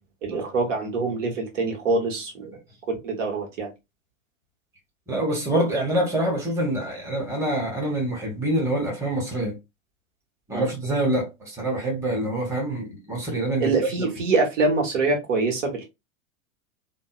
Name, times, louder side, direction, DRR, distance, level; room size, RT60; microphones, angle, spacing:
voice 1, 0.2-2.4 2.9-3.7 10.5-10.7 13.6-15.8, right 3 dB, 65° right, 1.1 m, -24 dB
voice 2, 5.1-9.5 10.5-14.1, right 1 dB, 5° right, 1.0 m, -26 dB
2.6 x 2.0 x 2.3 m
figure-of-eight pair, 90°, 40 cm